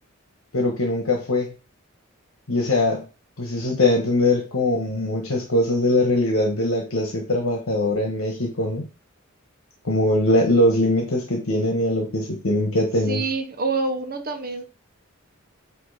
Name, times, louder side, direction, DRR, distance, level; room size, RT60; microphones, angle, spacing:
voice 1, 0.5-1.5 2.5-3.0 3.4-8.8 9.8-13.2, left 1 dB, 85° left, 2 dB, 1.3 m, -21 dB
voice 2, 13.1-14.6, right 3 dB, 45° right, 6 dB, 1.0 m, -26 dB
8.3 x 2.9 x 4.2 m, 0.32 s
head